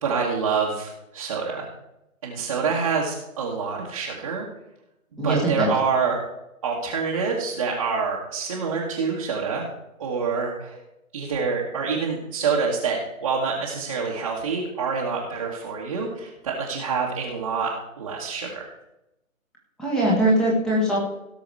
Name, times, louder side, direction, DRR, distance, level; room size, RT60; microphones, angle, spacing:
voice 1, 0.0-1.7 2.2-4.5 5.2-6.2 6.6-9.6 10.0-10.8 11.1-18.7, right 5 dB, 25° right, -4 dB, 1.5 m, -26 dB
voice 2, 5.2-5.7 19.8-21.0, right 1 dB, ahead, -4 dB, 1.4 m, -21 dB
17.5 x 6.2 x 4.7 m, 0.89 s
figure-of-eight pair, 155°, 42 cm